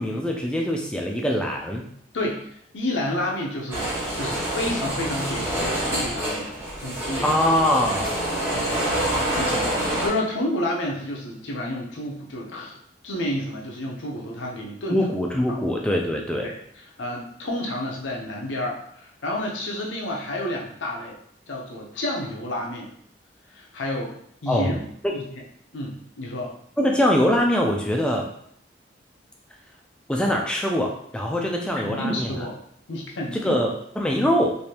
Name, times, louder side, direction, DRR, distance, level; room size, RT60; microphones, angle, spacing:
voice 1, 0.0-1.9 7.2-8.2 14.9-16.5 24.5-25.1 26.8-28.3 30.1-32.3 33.3-34.6, left 1 dB, 5° left, 0 dB, 0.3 m, -23 dB
voice 2, 2.1-2.5 2.7-6.5 6.8-7.5 7.9-8.0 8.5-12.8 13.0-15.0 15.5-15.6 16.4-16.6 17.0-21.2 21.5-22.9 23.5-24.2 24.4-24.9 25.1-25.2 25.7-26.5 31.4-31.5 31.8-32.6 32.9-33.5, left 1 dB, 90° left, -1 dB, 0.7 m, -30 dB
sound 1, 3.7-10.1, right 1 dB, 15° right, 1.1 m, -26 dB
3.3 x 2.6 x 2.8 m, 0.67 s
head